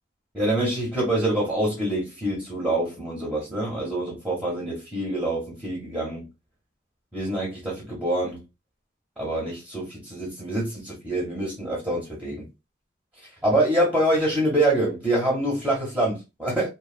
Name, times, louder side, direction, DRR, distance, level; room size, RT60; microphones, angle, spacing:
voice 1, 0.3-6.3 7.1-8.4 9.2-12.4 13.4-16.7, right 1 dB, 5° right, 0.9 m, -25 dB
2.7 x 2.3 x 2.3 m
head